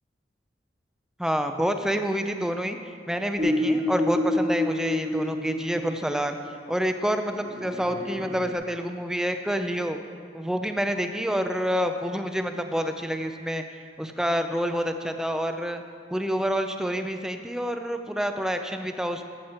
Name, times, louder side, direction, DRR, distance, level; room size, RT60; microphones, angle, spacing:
voice 1, 1.2-2.8 3.1-6.4 6.7-10.0 10.3-13.6 14.0-15.8 16.1-19.2, equal, 5° right, 7 dB, 0.5 m, -28 dB
sound 1, 3.4-6.3 7.3-8.5, left 1 dB, 40° right, 2.1 m, -28 dB
14.0 x 7.3 x 4.4 m, 2.2 s
head